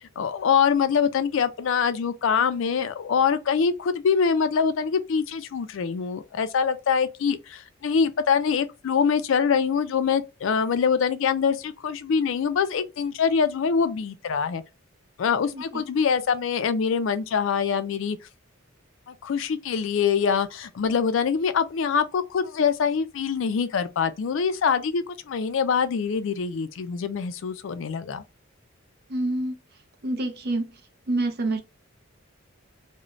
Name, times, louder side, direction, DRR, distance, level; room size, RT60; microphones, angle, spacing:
voice 1, 0.2-14.6 15.2-18.2 19.1-28.2, left 6 dB, 65° left, 0.4 m, -24 dB
voice 2, 15.5-15.8 29.1-29.6 30.0-30.8 31.1-31.6, right 2 dB, 50° right, 0.6 m, -27 dB
2.5 x 2.1 x 3.0 m
head